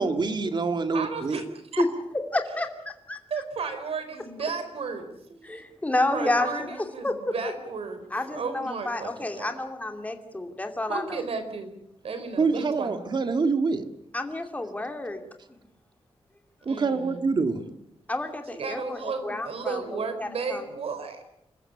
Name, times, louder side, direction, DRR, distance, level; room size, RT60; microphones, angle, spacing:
voice 1, 0.0-1.4 12.4-13.9 16.7-17.6, right 4 dB, 45° right, 8 dB, 2.1 m, -25 dB
voice 2, 0.9-1.4 1.7-1.8 3.3-5.1 6.1-8.0 8.3-9.5 10.9-11.7 12.0-13.0 16.7-17.3 18.5-21.3, right 4 dB, 75° right, 9 dB, 4.6 m, -33 dB
voice 3, 2.3-3.2 5.4-6.7 7.0-7.3 8.1-11.2 14.1-15.2 15.6-15.7 18.1-20.6, left 2 dB, 15° left, 5 dB, 2.8 m, -30 dB
27.0 x 15.0 x 9.9 m, 0.82 s
wide cardioid pair, 145°, 10 cm